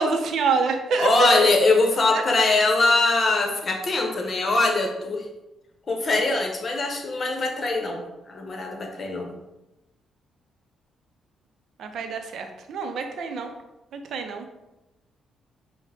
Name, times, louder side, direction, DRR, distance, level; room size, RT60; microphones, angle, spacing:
voice 1, 0.0-1.5 2.1-2.2 11.8-13.5 13.9-14.5, right 4 dB, 70° right, 6 dB, 0.5 m, -26 dB
voice 2, 1.0-5.3 5.9-9.3, left 3 dB, 45° left, 2 dB, 0.9 m, -22 dB
5.3 x 2.1 x 3.4 m, 0.99 s
supercardioid pair, 65°, 0 cm